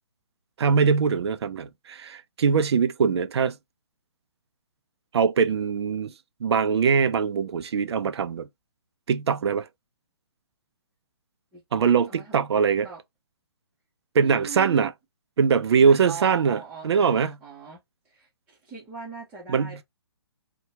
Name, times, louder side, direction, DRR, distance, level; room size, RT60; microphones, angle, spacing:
voice 1, 0.6-3.6 5.1-6.1 6.4-8.5 9.1-9.7 11.7-12.9 14.1-14.9 15.4-16.6 16.8-17.4 19.5-19.8, right 6 dB, 70° right, 0.5 m, -22 dB
voice 2, 12.1-13.0 14.1-14.9 15.8-19.8, right 7 dB, 10° right, 0.8 m, -40 dB
2.8 x 2.2 x 2.8 m
hypercardioid pair, 150°, 15 cm